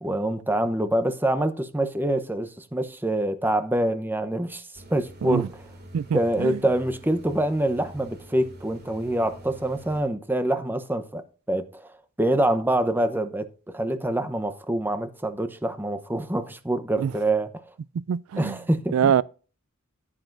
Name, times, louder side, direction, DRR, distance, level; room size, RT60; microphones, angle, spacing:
voice 1, 0.0-5.5 6.1-11.9 12.2-13.5 13.7-17.5 18.4-19.1, right 1 dB, 10° right, 0.8 m, -25 dB
sound 1, 4.7-10.0, right 1 dB, 50° right, 2.4 m, -46 dB
voice 2, 5.9-6.6 17.0-17.1 17.9-18.6 18.9-19.2, right 8 dB, 85° right, 0.3 m, -24 dB
10.5 x 10.0 x 2.6 m
head